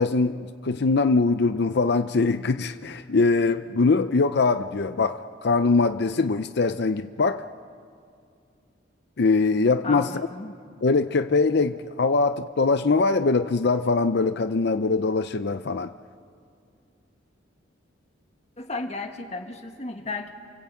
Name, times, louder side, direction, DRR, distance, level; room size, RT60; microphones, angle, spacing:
voice 1, 0.0-7.4 9.2-10.1 10.8-15.9, left 3 dB, 60° left, 0.6 m, -22 dB
voice 2, 9.8-10.6 18.6-20.3, left 3 dB, 35° left, 1.9 m, -34 dB
28.5 x 24.0 x 8.4 m
head